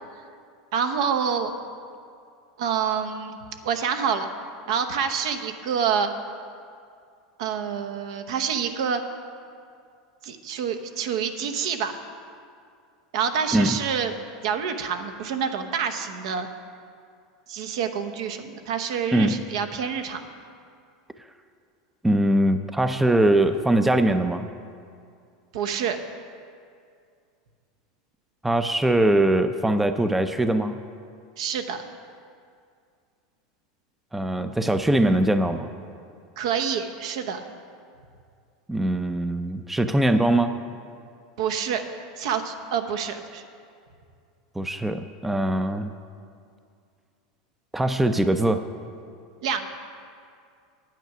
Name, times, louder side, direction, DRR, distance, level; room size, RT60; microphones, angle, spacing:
voice 1, 0.7-1.5 2.6-3.4 3.6-4.3 4.7-6.1 7.4-9.0 10.2-12.0 13.1-14.1 14.4-16.5 17.5-20.2 25.5-26.0 31.4-31.8 36.4-37.4 41.4-41.8 42.2-43.4 49.4-49.7, right 7 dB, 70° right, 7 dB, 0.9 m, -27 dB
voice 2, 19.1-19.4 22.0-24.5 28.4-30.8 34.1-35.7 38.7-40.6 44.6-45.9 47.7-48.6, right 1 dB, 5° right, 9 dB, 0.4 m, -22 dB
9.2 x 9.0 x 6.0 m, 2.3 s
supercardioid pair, 120°, 3 cm